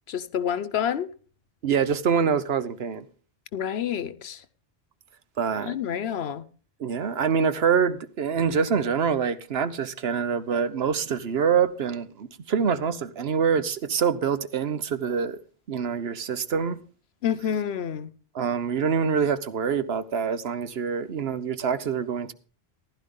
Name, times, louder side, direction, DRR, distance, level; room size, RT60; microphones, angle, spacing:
voice 1, 0.1-1.1 3.5-4.4 5.6-6.4 17.2-18.1, left 9 dB, 75° left, 1.0 m, -28 dB
voice 2, 1.6-3.0 5.4-5.8 6.8-15.4 15.7-16.8 18.3-22.3, right 6 dB, 75° right, 1.1 m, -25 dB
15.0 x 11.5 x 3.7 m
omnidirectional pair, 1.1 m